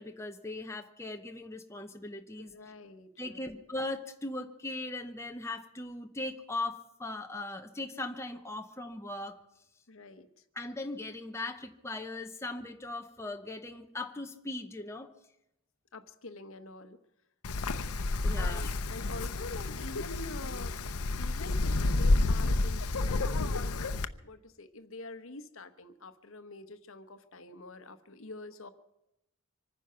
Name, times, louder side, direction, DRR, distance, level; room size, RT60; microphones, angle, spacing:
voice 1, 0.0-2.5 3.2-9.4 10.6-15.1 18.2-18.7, left 2 dB, 10° left, 4 dB, 0.8 m, -39 dB
voice 2, 2.4-3.6 9.9-10.3 15.9-17.0 18.3-20.8 21.2-28.7, left 2 dB, 60° left, 11 dB, 1.1 m, -46 dB
Wind, 17.4-24.1, left 2 dB, 85° left, 0.8 m, -30 dB
25.0 x 9.9 x 5.8 m, 0.86 s
head